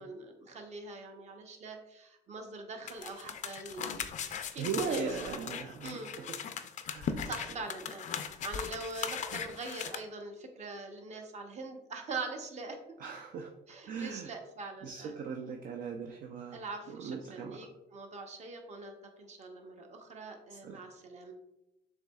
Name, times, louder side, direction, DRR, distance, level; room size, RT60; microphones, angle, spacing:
voice 1, 0.0-4.0 4.3-6.1 7.2-13.0 13.7-15.2 16.5-21.3, right 3 dB, 40° right, 4 dB, 0.8 m, -43 dB
sound 1, 2.9-9.9, left 7 dB, 45° left, 0.4 m, -39 dB
voice 2, 4.6-6.3 6.9-7.3 13.0-13.5 13.9-14.3 14.8-16.6 17.0-17.7 20.5-20.8, right 5 dB, 55° right, 3 dB, 0.5 m, -38 dB
7.1 x 2.7 x 2.3 m, 0.90 s
cardioid pair, 110°, 17 cm